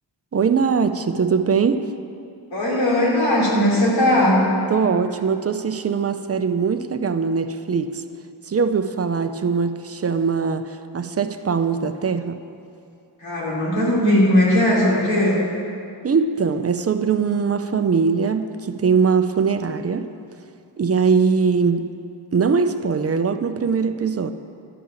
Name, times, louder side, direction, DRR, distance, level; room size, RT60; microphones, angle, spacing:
voice 1, 0.3-1.9 4.7-8.0 8.5-12.4 16.0-20.1 20.8-21.9 22.3-24.3, right 5 dB, 35° right, 0.4 m, -21 dB
voice 2, 2.5-4.4 13.2-15.4, left 1 dB, 75° left, 3.4 m, -18 dB
12.0 x 5.5 x 8.8 m
wide cardioid pair, 150°, 46 cm